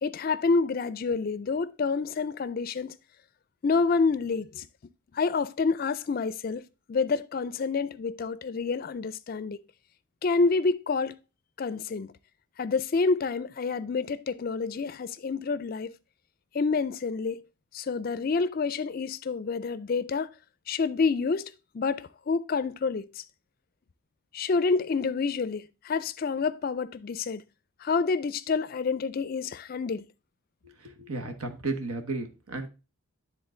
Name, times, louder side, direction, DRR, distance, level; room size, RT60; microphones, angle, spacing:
voice 1, 0.0-2.9 3.6-4.7 5.1-6.6 6.9-9.6 10.2-11.2 11.6-12.1 12.6-15.9 16.5-17.4 17.7-20.3 20.7-23.2 24.3-27.4 27.8-30.1, left 4 dB, 45° left, 0.3 m, -28 dB
voice 2, 30.8-32.7, right 3 dB, 90° right, 1.1 m, -33 dB
10.0 x 3.8 x 3.7 m
head